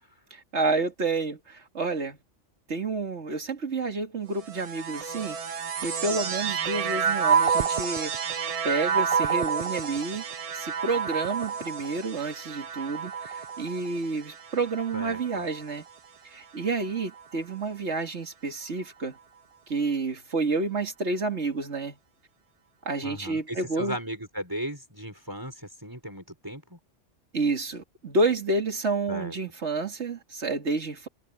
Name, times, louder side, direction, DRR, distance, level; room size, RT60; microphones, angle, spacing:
voice 1, 0.3-2.2 2.7-8.1 8.6-10.3 10.5-15.8 16.3-19.2 19.7-22.0 22.9-24.0 27.3-31.1, right 3 dB, 65° right, 2.5 m, -29 dB
sound 1, 4.4-15.9 16.6-17.4, right 6 dB, 40° right, 0.5 m, -29 dB
voice 2, 14.9-15.4 23.0-26.8 29.1-29.3, equal, 15° right, 6.1 m, -36 dB
omnidirectional pair, 1.3 m